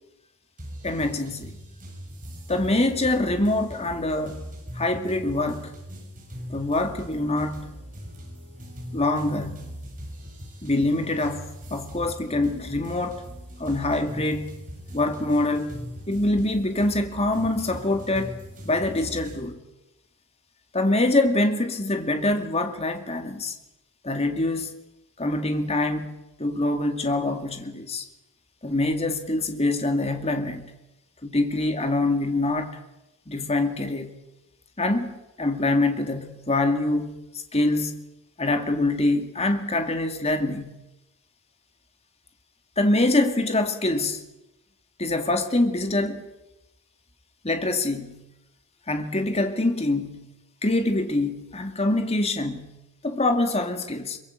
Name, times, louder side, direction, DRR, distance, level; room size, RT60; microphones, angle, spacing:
sound 1, 0.6-19.3, equal, 35° right, 7.3 m, -40 dB
voice 1, 0.8-1.6 2.5-4.4 4.7-5.7 6.5-7.7 8.9-9.7 10.6-13.2 13.6-14.6 14.9-15.8 16.1-19.6 20.7-23.5 24.0-24.7 25.2-28.0 28.6-30.7 31.2-32.7 33.3-34.2 34.8-35.1 35.4-37.1 37.5-38.0 38.4-40.7 42.8-44.2 45.0-46.2 47.4-48.2 48.9-50.3 50.6-52.8 53.0-54.2, left 2 dB, 30° left, 2.4 m, -25 dB
23.0 x 22.5 x 8.0 m
head